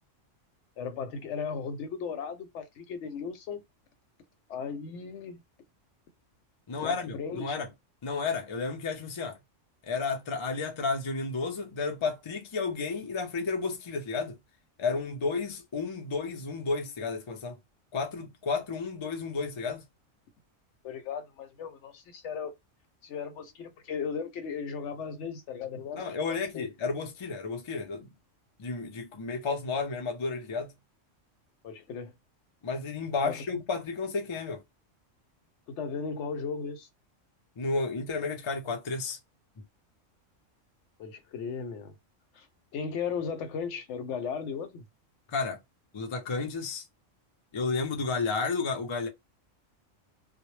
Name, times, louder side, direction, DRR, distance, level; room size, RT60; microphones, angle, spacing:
voice 1, 0.8-3.6 4.5-5.4 6.8-7.6 20.8-22.6 23.0-26.7 31.6-32.1 33.2-33.4 35.7-36.9 41.0-41.9 42.3-42.5 42.7-44.8, left 6 dB, 70° left, 0.8 m, -36 dB
voice 2, 6.7-7.7 8.0-9.4 9.8-14.4 14.8-17.6 17.9-19.8 26.0-28.1 28.6-30.7 32.6-34.6 37.6-39.2 45.3-45.6 45.9-46.8 47.5-49.1, left 4 dB, 50° left, 0.3 m, -32 dB
2.1 x 2.0 x 3.0 m
omnidirectional pair, 1.3 m